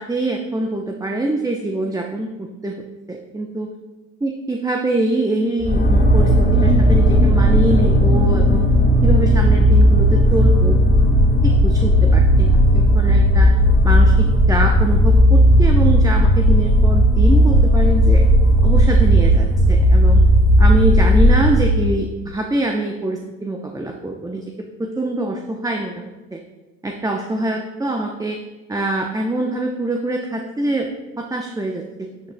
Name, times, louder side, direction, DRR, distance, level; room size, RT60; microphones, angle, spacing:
voice 1, 0.0-2.8 3.1-3.7 4.2-8.7 9.0-10.8 11.4-13.6 13.8-18.2 18.6-20.2 20.6-24.4 24.8-26.4 26.8-28.4 28.7-30.9 31.2-32.1, right 1 dB, 10° right, 2 dB, 0.7 m, -24 dB
sound 1, 5.6-21.9, equal, 25° left, 1.6 m, -14 dB
9.9 x 8.7 x 2.2 m, 1.2 s
hypercardioid pair, 55°, 39 cm